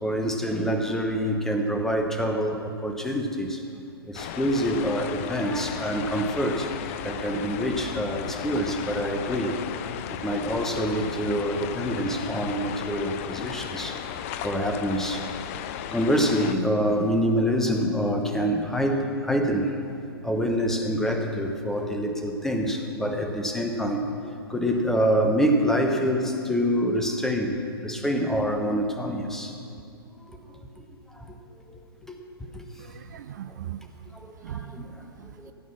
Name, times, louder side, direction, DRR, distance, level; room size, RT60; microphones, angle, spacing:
voice 1, 0.0-3.6 4.1-6.7 7.0-9.6 10.1-14.0 14.4-15.5 15.9-19.8 20.2-24.1 24.5-29.6 30.3-30.4 31.1-31.4 31.7-32.2 32.5-32.7 34.1-35.0 35.4-35.5, equal, 5° left, 4 dB, 0.9 m, -26 dB
sound 1, 4.1-16.5, left 10 dB, 35° left, 0.5 m, -35 dB
voice 2, 32.8-33.9 34.4-34.8 35.2-35.5, right 11 dB, 45° right, 11 dB, 0.4 m, -39 dB
16.0 x 8.2 x 6.0 m, 2.5 s
figure-of-eight pair, 115°, 13 cm